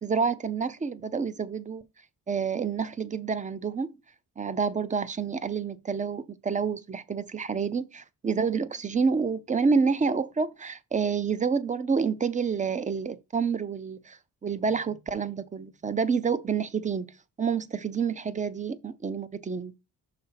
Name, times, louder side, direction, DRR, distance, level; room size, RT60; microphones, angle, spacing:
voice 1, 0.0-1.8 2.3-3.9 4.4-17.1 17.4-19.7, right 5 dB, 20° right, 0.5 m, -28 dB
5.8 x 3.7 x 5.7 m
wide cardioid pair, 145°, 36 cm